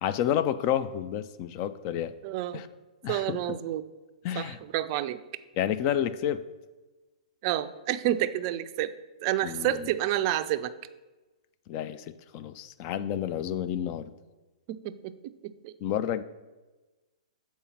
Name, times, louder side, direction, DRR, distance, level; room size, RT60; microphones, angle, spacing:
voice 1, 0.0-2.1 2.5-2.7 3.0-3.4 4.2-4.6 5.6-6.4 9.4-9.9 11.7-14.1 15.8-16.2, left 10 dB, 35° left, 13 dB, 0.4 m, -30 dB
voice 2, 2.2-2.6 3.1-3.8 4.4-5.2 7.4-8.9 9.2-10.7 14.7-15.7, right 13 dB, 40° right, 12 dB, 0.4 m, -29 dB
7.1 x 4.4 x 5.6 m, 1.2 s
figure-of-eight pair, 115°, 4 cm